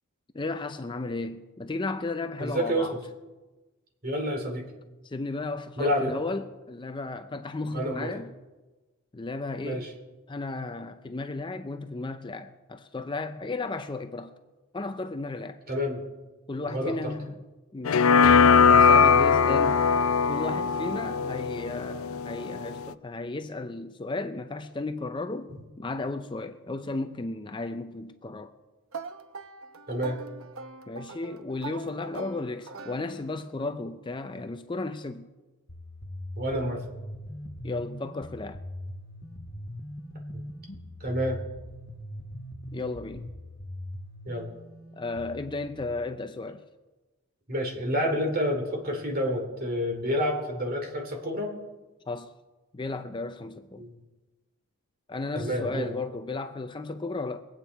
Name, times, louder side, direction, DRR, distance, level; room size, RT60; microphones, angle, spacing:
voice 1, 0.3-3.0 5.0-8.3 9.1-9.9 10.3-14.3 14.7-15.6 16.5-17.3 17.7-19.8 20.3-25.5 25.8-28.5 30.9-35.3 37.6-38.6 42.7-43.3 45.0-46.6 52.1-52.3 52.7-53.8 55.1-57.4, left 3 dB, 20° left, 0.5 m, -34 dB
voice 2, 2.4-2.9 4.0-4.6 5.8-6.1 7.7-8.1 9.6-9.9 15.7-16.0 16.7-17.0 29.9-30.2 36.4-36.8 40.3-40.4 41.0-41.4 44.2-44.5 47.5-51.5 53.8-53.9 55.3-55.9, equal, 45° right, 2.8 m, -28 dB
sound 1, 17.8-22.9, left 6 dB, 75° left, 0.4 m, -20 dB
sound 2, 28.9-33.5, right 4 dB, 75° right, 0.8 m, -42 dB
sound 3, 35.7-45.8, left 1 dB, 50° left, 1.5 m, -41 dB
22.5 x 8.9 x 4.6 m
head